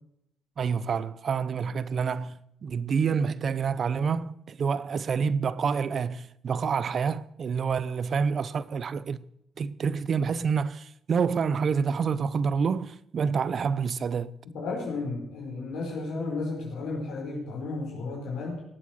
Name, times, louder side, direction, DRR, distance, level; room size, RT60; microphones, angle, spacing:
voice 1, 0.6-9.2 9.6-14.3, right 6 dB, 50° right, 0.7 m, -28 dB
voice 2, 14.5-18.6, left 3 dB, 85° left, 4.6 m, -33 dB
18.5 x 7.6 x 6.4 m
cardioid pair, 90°, 0 cm